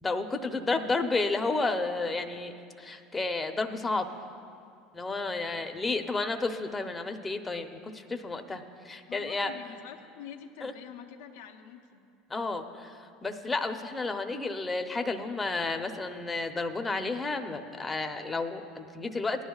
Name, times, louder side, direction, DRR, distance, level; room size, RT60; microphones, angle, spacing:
voice 1, 0.0-4.1 4.9-9.5 10.6-10.7 12.3-19.4, left 3 dB, 20° left, 6 dB, 0.8 m, -31 dB
voice 2, 9.1-12.0, left 8 dB, 80° left, 2 dB, 0.7 m, -46 dB
18.5 x 11.0 x 2.4 m, 2.4 s
hypercardioid pair, 85°, 0 cm